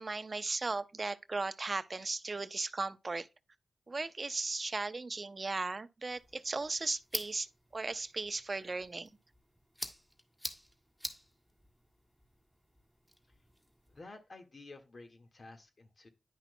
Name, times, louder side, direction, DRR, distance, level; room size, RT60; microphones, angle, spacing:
voice 1, 0.0-3.3 3.9-7.5 7.7-9.1, right 3 dB, 45° right, 0.6 m, -36 dB
sound 1, 6.1-14.0, equal, 5° left, 1.7 m, -47 dB
voice 2, 13.9-16.1, left 3 dB, 55° left, 1.7 m, -52 dB
10.0 x 5.8 x 2.2 m
cardioid pair, 45°, 0 cm